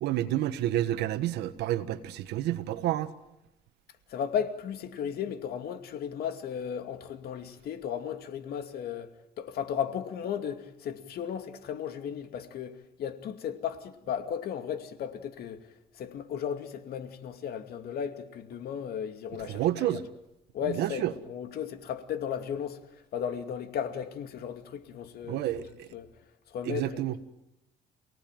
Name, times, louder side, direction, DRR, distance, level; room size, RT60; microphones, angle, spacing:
voice 1, 0.0-3.1 19.5-20.0 20.7-21.1 25.3-25.9 26.6-27.1, right 13 dB, 85° right, 1.5 m, -29 dB
voice 2, 4.1-9.1 9.4-20.0 20.5-26.1 26.5-27.2, left 8 dB, 65° left, 2.5 m, -35 dB
29.0 x 18.0 x 9.2 m
cardioid pair, 110°, 17 cm